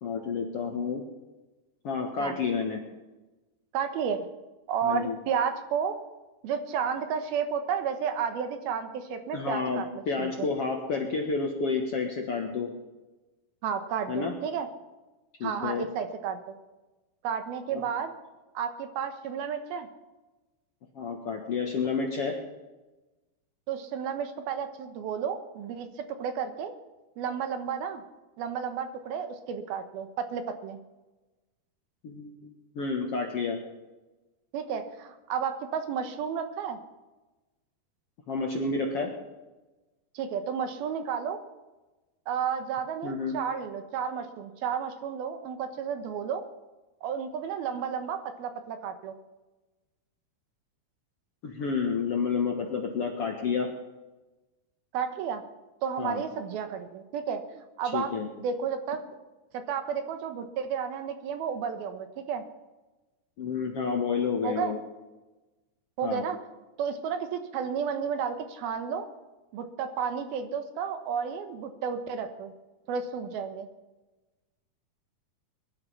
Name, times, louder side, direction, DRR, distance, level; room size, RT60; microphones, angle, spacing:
voice 1, 0.0-1.0 1.8-2.8 4.8-5.2 9.3-12.7 14.1-14.3 15.4-15.9 17.7-17.8 20.9-22.4 32.0-33.6 38.3-39.1 43.0-43.4 51.4-53.7 56.0-56.2 57.9-58.3 63.4-64.8 66.0-66.3, left 5 dB, 55° left, 2 dB, 1.7 m, -30 dB
voice 2, 3.7-4.2 4.7-6.0 6.4-10.5 13.6-14.7 15.4-16.4 17.2-18.1 18.5-19.9 23.7-25.9 26.2-26.7 27.2-28.0 28.4-30.8 34.5-36.8 40.1-41.4 42.3-46.4 47.0-49.1 54.9-55.4 55.8-58.1 58.4-59.0 59.5-62.4 64.4-64.8 66.0-66.4 66.8-69.1 69.5-72.5 72.9-73.7, right 7 dB, 75° right, 8 dB, 3.0 m, -32 dB
21.5 x 12.0 x 5.6 m, 1.1 s
omnidirectional pair, 4.6 m